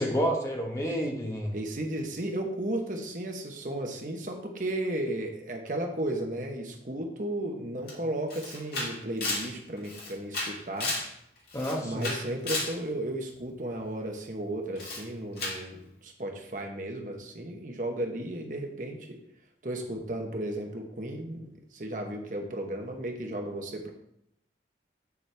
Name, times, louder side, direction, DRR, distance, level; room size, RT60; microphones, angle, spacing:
voice 1, 0.0-1.5 11.5-12.1, equal, 15° left, 0 dB, 1.2 m, -29 dB
voice 2, 1.5-11.0 11.8-19.2 19.6-23.9, right 1 dB, 45° right, 2 dB, 1.1 m, -34 dB
Camera, 7.9-8.0 8.3-11.1 11.5-12.8 14.8-15.0 15.4-15.6, left 2 dB, 60° left, 2.1 m, -33 dB
8.0 x 7.1 x 3.4 m, 0.74 s
head